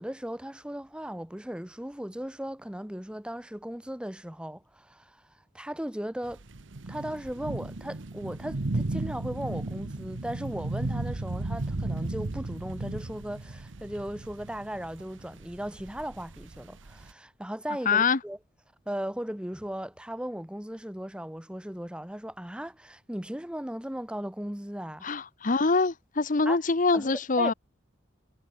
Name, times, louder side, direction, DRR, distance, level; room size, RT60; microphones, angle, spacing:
voice 1, 0.0-5.3 5.5-6.4 6.9-18.4 18.9-25.0 26.5-26.6 26.9-27.5, equal, 5° right, 0.9 m, -37 dB
sound 1, 6.2-17.1, right 2 dB, 65° right, 1.0 m, -35 dB
voice 2, 17.9-18.2 25.0-27.5, left 4 dB, 40° left, 0.9 m, -24 dB
head